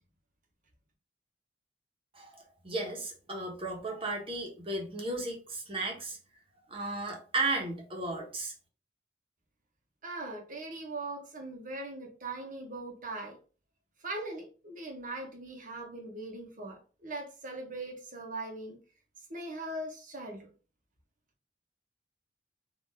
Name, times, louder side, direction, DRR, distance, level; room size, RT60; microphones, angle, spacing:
voice 1, 2.1-6.2 6.7-8.5, right 2 dB, 30° right, 0 dB, 1.4 m, -35 dB
voice 2, 10.0-13.4 14.0-18.8 19.3-20.5, right 2 dB, 50° right, 1 dB, 1.2 m, -40 dB
4.5 x 2.9 x 3.6 m, 0.36 s
head